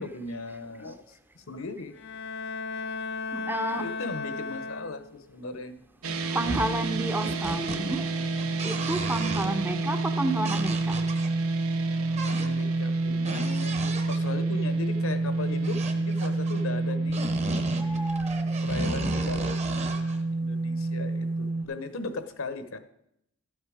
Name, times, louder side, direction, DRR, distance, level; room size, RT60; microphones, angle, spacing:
voice 1, 0.0-2.0 3.8-5.8 12.2-13.7 14.1-18.2 18.6-22.8, left 3 dB, 70° left, 0.9 m, -38 dB
Bowed string instrument, 1.9-5.3, left 4 dB, 55° left, 0.4 m, -35 dB
voice 2, 3.3-3.9 6.0-8.1 8.6-11.0 17.8-18.6, right 1 dB, 10° right, 0.6 m, -31 dB
sound 1, 6.0-21.6, right 2 dB, 80° right, 1.0 m, -28 dB
sound 2, 7.2-8.0 8.3-9.7 10.4-11.3 12.1-12.6 13.1-14.4 15.6-16.6 17.1-20.2, right 2 dB, 30° right, 0.9 m, -35 dB
12.5 x 8.2 x 5.0 m
head